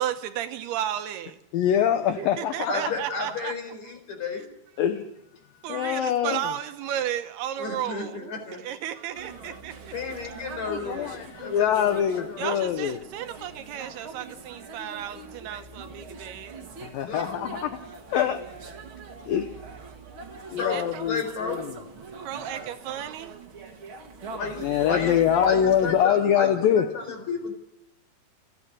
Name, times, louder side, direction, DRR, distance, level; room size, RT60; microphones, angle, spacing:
voice 1, 0.0-1.4 2.2-3.5 5.0-5.1 5.6-9.9 12.4-16.6 20.6-20.8 22.2-23.3, right 11 dB, 75° right, 9 dB, 2.8 m, -33 dB
voice 2, 1.5-2.7 4.8-5.0 5.7-6.4 10.7-13.0 16.8-17.8 18.1-18.4 19.3-19.5 20.3-21.7 24.6-26.9, left 9 dB, 75° left, 9 dB, 2.3 m, -24 dB
voice 3, 2.7-4.5 7.6-8.6 9.4-9.5 9.9-12.6 17.1-17.6 20.6-20.8 21.1-21.6 24.4-24.5 24.8-25.2 25.4-27.5, left 4 dB, 40° left, 5 dB, 5.4 m, -32 dB
sound 1, 9.1-26.1, right 4 dB, 40° right, 2.0 m, -42 dB
29.5 x 9.9 x 9.8 m, 0.85 s
omnidirectional pair, 5.0 m